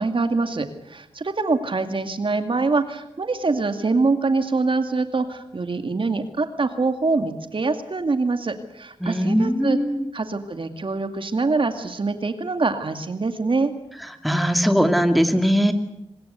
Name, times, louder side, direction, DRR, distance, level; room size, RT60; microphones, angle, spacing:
voice 1, 0.0-9.8 10.1-13.7, right 3 dB, 50° right, 8 dB, 2.3 m, -24 dB
voice 2, 9.0-10.1 14.2-15.7, equal, ahead, 7 dB, 2.5 m, -20 dB
24.0 x 20.5 x 8.2 m, 0.86 s
cardioid pair, 55°, 11 cm